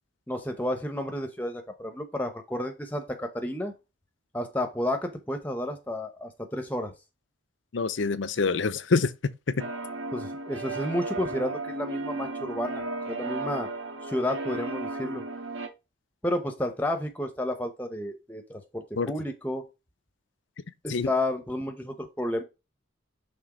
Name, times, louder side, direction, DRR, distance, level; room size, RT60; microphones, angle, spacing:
voice 1, 0.3-3.7 4.3-6.9 10.1-13.7 14.0-15.2 16.2-19.7 20.8-22.4, left 1 dB, 10° left, 0.8 m, -31 dB
voice 2, 7.7-9.6 19.0-19.1 20.9-21.1, left 4 dB, 75° left, 0.6 m, -26 dB
sound 1, 9.6-15.7, right 3 dB, 90° right, 1.7 m, -35 dB
6.1 x 3.7 x 4.8 m
head